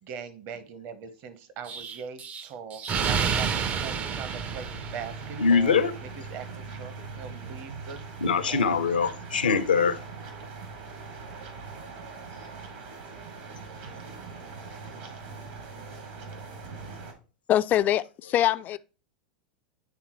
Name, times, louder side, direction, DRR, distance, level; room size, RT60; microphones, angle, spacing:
voice 1, 0.0-5.7 6.0-8.0 8.5-8.8, right 6 dB, 50° right, 1.0 m, -41 dB
Explosion, 1.7-5.5, right 6 dB, 30° right, 0.5 m, -30 dB
sound 1, 3.0-17.1, right 4 dB, 70° right, 2.1 m, -41 dB
voice 2, 5.4-6.0 8.2-10.0, left 5 dB, 85° left, 0.7 m, -23 dB
voice 3, 17.5-18.8, left 12 dB, 35° left, 0.4 m, -23 dB
9.4 x 3.6 x 3.0 m
hypercardioid pair, 90°, 5 cm